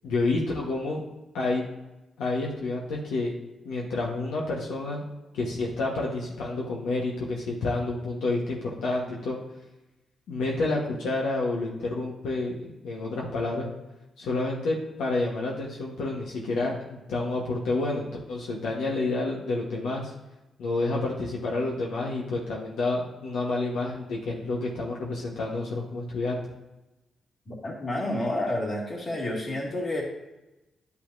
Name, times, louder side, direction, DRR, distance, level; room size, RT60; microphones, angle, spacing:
voice 1, 0.0-1.0 1.3-1.6 2.2-3.3 3.6-5.0 5.3-9.4 10.3-13.7 14.2-20.1 20.6-26.4, left 2 dB, 90° left, -3 dB, 1.3 m, -29 dB
voice 2, 27.5-30.0, left 1 dB, 45° left, -2 dB, 2.3 m, -30 dB
10.5 x 5.6 x 2.7 m, 1.0 s
cardioid pair, 65°, 0 cm